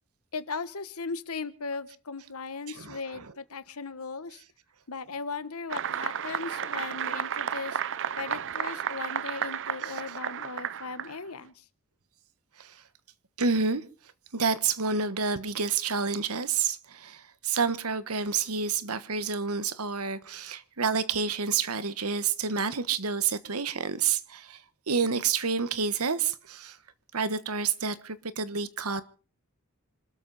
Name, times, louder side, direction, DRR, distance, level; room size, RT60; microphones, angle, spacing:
voice 1, 0.3-4.4 4.9-7.8 8.2-11.5, left 4 dB, 75° left, 1.2 m, -37 dB
voice 2, 2.7-3.3 9.8-10.2 12.6-12.7 13.4-13.8 14.3-24.6 24.9-26.8 27.1-29.0, right 5 dB, 75° right, 1.3 m, -29 dB
sound 1, 5.7-11.2, right 8 dB, 60° right, 0.7 m, -33 dB
26.0 x 13.0 x 4.1 m
head